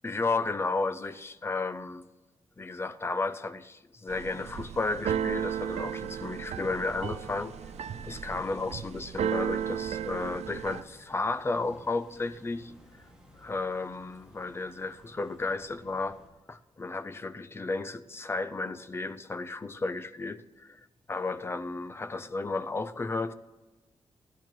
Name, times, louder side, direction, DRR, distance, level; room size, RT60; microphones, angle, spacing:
voice 1, 0.0-2.1 2.6-7.6 8.0-12.7 13.3-16.2 16.5-20.8 21.1-23.3, left 3 dB, 20° left, 0.5 m, -33 dB
Keyboard (musical), 4.1-10.8, right 9 dB, 80° right, 0.4 m, -34 dB
sound 1, 5.5-16.3, equal, 5° right, 2.1 m, -54 dB
16.0 x 12.0 x 3.1 m
wide cardioid pair, 155°, 11 cm